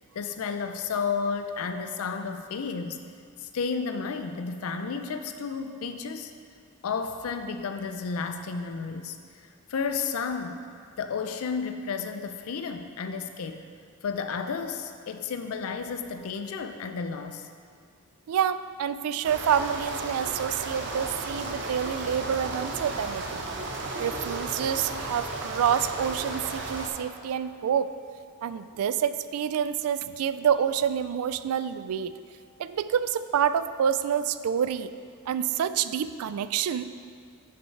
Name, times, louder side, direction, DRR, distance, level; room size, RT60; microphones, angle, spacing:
voice 1, 0.2-3.0 3.4-6.3 6.8-10.6 11.0-13.6 14.0-17.5 24.9-25.0, left 5 dB, 65° left, 7 dB, 0.4 m, -32 dB
voice 2, 18.3-23.4 24.0-27.9 28.4-32.2 32.6-34.9 35.3-36.8, right 8 dB, 75° right, 14 dB, 0.3 m, -27 dB
sound 1, 19.2-26.9, right 2 dB, 55° right, 0.7 m, -34 dB
7.0 x 6.0 x 4.5 m, 2.2 s
head